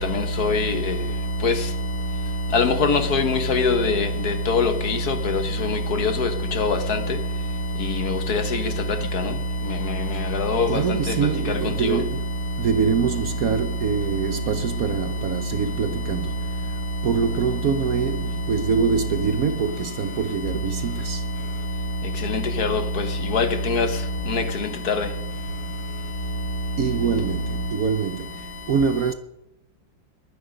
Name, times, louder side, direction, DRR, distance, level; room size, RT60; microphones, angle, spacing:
voice 1, 0.4-0.7 1.4-1.5 2.5-4.1 4.5-5.1 6.0-6.3 6.6-6.8 8.3-8.4 10.4-10.7 22.6-22.8 23.3-23.9 24.3-24.4, left 4 dB, 55° left, 1.6 m, -21 dB
voice 2, 10.7-12.2 12.6-16.3 17.0-21.2 26.8-28.3 28.7-29.1, right 6 dB, 60° right, 1.1 m, -24 dB
21.0 x 9.9 x 5.2 m
omnidirectional pair, 2.0 m